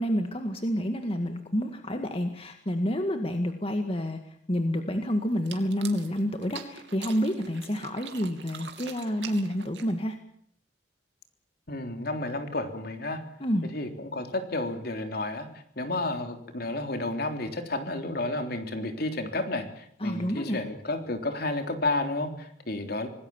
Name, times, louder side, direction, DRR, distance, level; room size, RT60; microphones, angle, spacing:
voice 1, 0.0-4.2 4.5-10.2 13.4-13.7 20.0-20.6, equal, 30° left, 6 dB, 1.9 m, -29 dB
sound 1, 5.3-10.2, right 8 dB, 70° right, 2.9 m, -44 dB
voice 2, 11.7-13.2 13.6-15.5 15.8-23.1, left 2 dB, 60° left, 6 dB, 3.5 m, -31 dB
26.5 x 19.5 x 7.3 m, 0.66 s
head